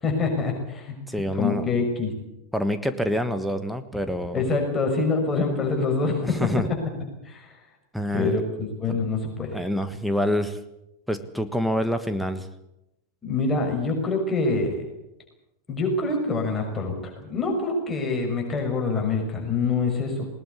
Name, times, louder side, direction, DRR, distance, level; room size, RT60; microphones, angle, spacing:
voice 1, 0.0-1.0 1.4-2.1 4.3-6.8 7.2-7.6 8.1-9.6 13.2-14.8 15.7-20.3, left 3 dB, 20° left, 2 dB, 6.1 m, -25 dB
voice 2, 1.1-1.7 2.5-4.4 6.2-6.7 7.9-8.4 8.9-9.0 9.5-10.6 11.1-12.5, equal, ahead, 8 dB, 1.4 m, -26 dB
20.0 x 19.5 x 8.4 m, 0.87 s
figure-of-eight pair, 90°, 0 cm